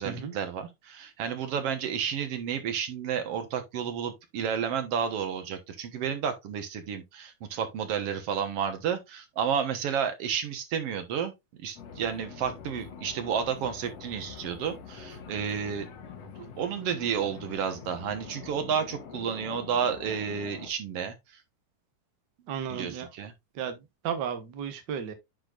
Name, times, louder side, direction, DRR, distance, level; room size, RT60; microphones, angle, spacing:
voice 1, 0.0-11.3 11.6-15.9 16.4-21.1 22.7-23.3, right 7 dB, 60° right, 1.9 m, -31 dB
sound 1, 11.8-20.7, left 7 dB, 60° left, 2.1 m, -45 dB
voice 2, 22.5-23.1 23.5-23.8 24.0-25.1, right 8 dB, 85° right, 0.9 m, -33 dB
10.0 x 4.5 x 2.5 m
omnidirectional pair, 3.7 m